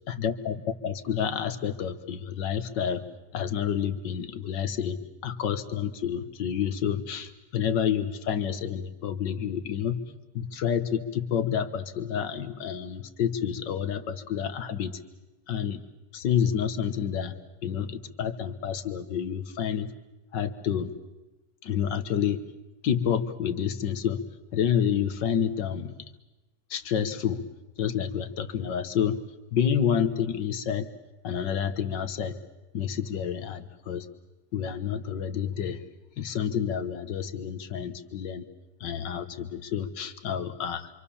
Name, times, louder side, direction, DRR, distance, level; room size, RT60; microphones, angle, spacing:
voice 1, 0.1-3.0 3.3-15.0 15.5-15.8 16.1-17.4 17.6-19.9 20.3-21.0 21.6-22.4 22.8-24.2 24.5-26.0 26.7-27.4 27.8-29.2 29.5-30.9 31.2-32.4 32.7-34.1 34.5-35.8 36.2-38.5 38.8-41.0, left 8 dB, 85° left, 11 dB, 2.0 m, -29 dB
27.0 x 26.0 x 7.1 m, 1.1 s
omnidirectional pair, 1.9 m